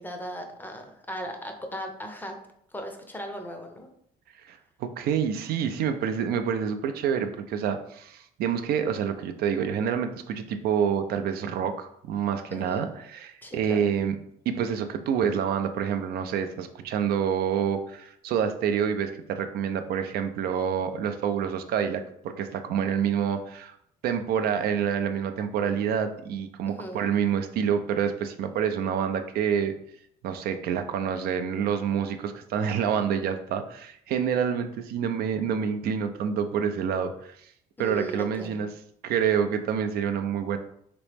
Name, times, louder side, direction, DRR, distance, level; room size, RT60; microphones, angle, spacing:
voice 1, 0.0-2.4 2.7-3.9 12.5-12.9 13.4-13.9 26.7-27.1 37.8-38.6, equal, 10° left, 4 dB, 0.5 m, -37 dB
voice 2, 4.4-14.2 14.5-23.7 24.0-29.8 30.2-37.4 37.8-38.7 39.0-40.6, right 7 dB, 65° right, 8 dB, 0.4 m, -27 dB
3.0 x 3.0 x 3.3 m, 0.69 s
cardioid pair, 110°, 17 cm